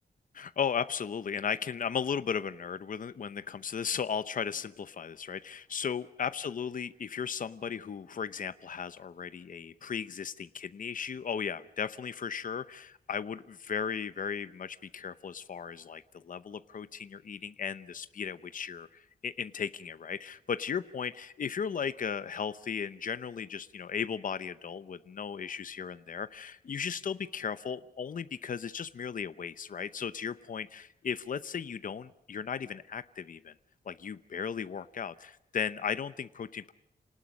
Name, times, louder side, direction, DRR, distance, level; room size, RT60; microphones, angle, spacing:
voice 1, 0.3-33.5 33.9-36.7, left 7 dB, 55° left, 13 dB, 0.8 m, -36 dB
28.5 x 19.0 x 6.4 m, 0.80 s
wide cardioid pair, 150°, 17 cm